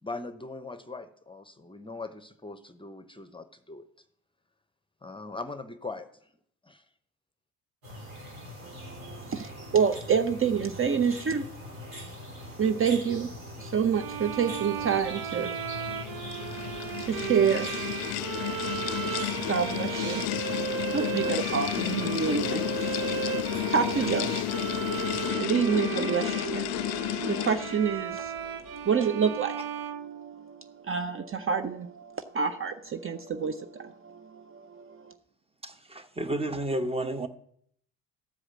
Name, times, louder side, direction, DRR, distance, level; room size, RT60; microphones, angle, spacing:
voice 1, 0.0-3.9 5.0-6.3 6.6-6.9, left 3 dB, 15° left, 10 dB, 0.9 m, -41 dB
sound 1, 7.8-25.3, left 1 dB, 90° right, 3.7 m, -43 dB
voice 2, 8.6-35.1, right 6 dB, 35° right, 9 dB, 0.8 m, -30 dB
sound 2, 13.9-30.8, right 10 dB, 60° right, 0.8 m, -35 dB
sound 3, 15.7-27.9, left 17 dB, 70° left, 0.5 m, -32 dB
voice 3, 35.6-37.3, right 1 dB, 15° right, 9 dB, 1.1 m, -31 dB
13.5 x 4.8 x 7.5 m, 0.66 s
hypercardioid pair, 60°, 39 cm